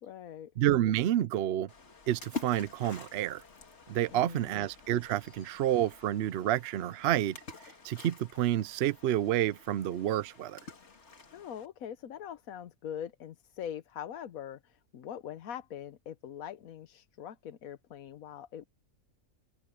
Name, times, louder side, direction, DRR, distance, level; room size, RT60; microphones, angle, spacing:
voice 1, 0.0-0.5 4.1-4.6 11.3-18.7, left 9 dB, 70° left, 1.2 m, -43 dB
voice 2, 0.6-1.7 2.1-3.4 3.9-10.6, right 12 dB, 65° right, 0.6 m, -29 dB
Splash splatter, 1.7-11.7, left 3 dB, 50° left, 2.2 m, -48 dB
open air
omnidirectional pair, 1.5 m